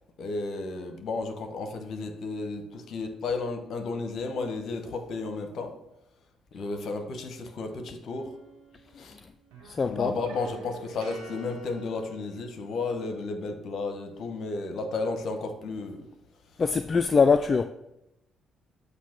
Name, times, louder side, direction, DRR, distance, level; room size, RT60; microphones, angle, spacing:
voice 1, 0.2-5.7 6.5-8.3 9.0-9.2 9.8-16.0, left 3 dB, 60° left, 1.0 m, -33 dB
sound 1, 8.1-9.1 9.4-13.0, right 3 dB, 90° right, 1.5 m, -47 dB
voice 2, 9.7-10.1 16.6-17.6, left 5 dB, 40° left, 0.3 m, -22 dB
8.1 x 2.7 x 5.9 m
hypercardioid pair, 55°, 0 cm